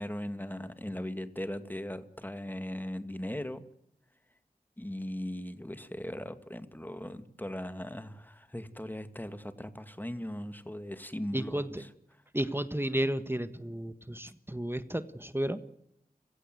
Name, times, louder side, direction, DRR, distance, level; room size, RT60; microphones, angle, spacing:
voice 1, 0.0-3.6 4.8-11.9, left 1 dB, 10° left, 10 dB, 2.3 m, -39 dB
voice 2, 11.3-11.7 12.3-15.6, right 1 dB, 15° right, 12 dB, 1.5 m, -32 dB
30.0 x 17.0 x 8.0 m, 0.77 s
wide cardioid pair, 50°, 15 cm